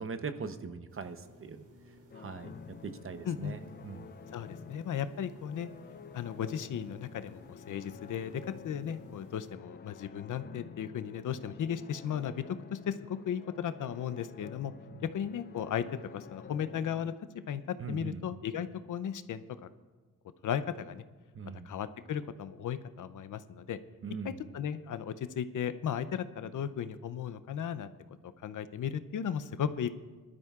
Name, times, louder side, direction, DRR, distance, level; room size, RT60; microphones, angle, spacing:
voice 1, 0.0-1.6 2.1-2.5 2.8-4.1 14.9-15.1 17.8-18.2 21.3-21.7 24.0-24.4, right 5 dB, 40° right, 9 dB, 0.8 m, -41 dB
sound 1, 0.9-9.5, left 1 dB, 65° right, 2.7 m, -58 dB
sound 2, 2.1-17.2, left 7 dB, 30° left, 0.4 m, -50 dB
voice 2, 4.3-5.7 6.1-14.7 15.0-15.8 16.1-17.1 17.5-17.6 17.9-19.4 20.4-21.0 21.6-23.8 24.2-27.9 28.4-29.9, left 8 dB, 65° left, 12 dB, 0.6 m, -35 dB
20.5 x 12.5 x 2.4 m, 1.3 s
cardioid pair, 105°, 33 cm